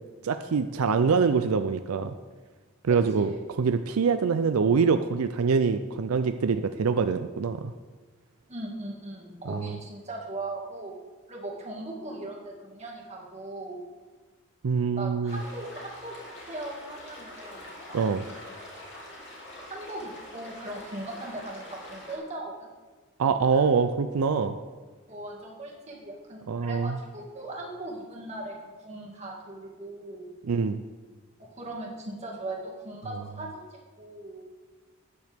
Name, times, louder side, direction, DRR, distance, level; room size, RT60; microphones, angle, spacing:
voice 1, 0.2-2.1 2.8-3.3 3.6-7.7 9.5-9.8 14.6-15.4 17.9-18.2 23.2-24.6 26.5-27.0 30.4-30.8, right 5 dB, 80° right, 9 dB, 0.4 m, -24 dB
voice 2, 2.9-3.4 8.5-10.9 11.3-13.8 14.9-17.8 19.7-22.7 23.5-23.7 25.1-30.3 31.4-34.4, right 2 dB, 30° right, -2 dB, 2.1 m, -39 dB
sound 1, 15.3-22.2, left 1 dB, 55° left, 2.8 m, -45 dB
13.0 x 9.4 x 3.5 m, 1.3 s
head